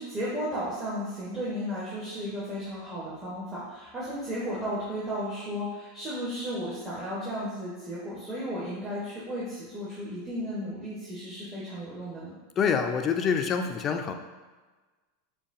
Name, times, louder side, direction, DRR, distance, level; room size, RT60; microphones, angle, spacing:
voice 1, 0.0-12.3, equal, 20° right, -9 dB, 1.2 m, -34 dB
voice 2, 12.6-14.1, left 6 dB, 35° left, 6 dB, 0.4 m, -26 dB
6.7 x 2.3 x 2.6 m, 1.3 s
hypercardioid pair, 100°, 0 cm